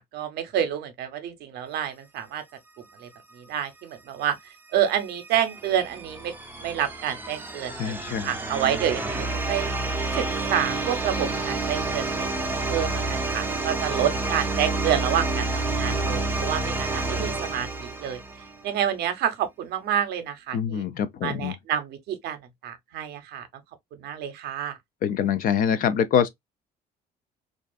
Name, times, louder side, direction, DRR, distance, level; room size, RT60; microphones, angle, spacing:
voice 1, 0.0-2.4 3.0-4.4 4.7-6.3 6.6-9.7 10.2-10.3 10.5-12.3 12.7-18.2 18.6-20.8 21.2-23.5 23.9-24.8, right 10 dB, 70° right, 0.6 m, -28 dB
sound 1, 4.8-18.7, right 2 dB, 10° right, 0.5 m, -29 dB
voice 2, 7.8-8.4 20.5-21.5 25.0-26.3, left 8 dB, 55° left, 0.4 m, -24 dB
2.5 x 2.4 x 2.2 m
cardioid pair, 110°, 17 cm